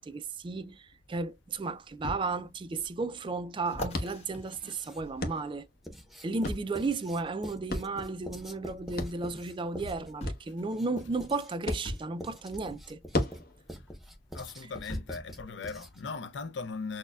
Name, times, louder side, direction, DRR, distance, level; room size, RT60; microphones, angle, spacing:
voice 1, 0.0-5.7 6.2-13.0, right 3 dB, 25° right, 0.3 m, -34 dB
sound 1, 0.9-1.0 2.0-2.2 2.8-2.9 3.6-5.5 6.4-6.8 7.9-8.1 9.4-9.5 10.2-10.5 11.8-12.1 13.7-13.8 14.9-15.2 16.0-16.1, equal, 35° left, 1.4 m, -39 dB
sound 2, 1.3-15.4, left 1 dB, 55° left, 1.0 m, -40 dB
Writing, 4.5-5.2 5.8-16.2, equal, ahead, 0.7 m, -46 dB
voice 2, 14.3-17.0, left 4 dB, 75° left, 0.5 m, -39 dB
6.3 x 2.1 x 2.3 m
head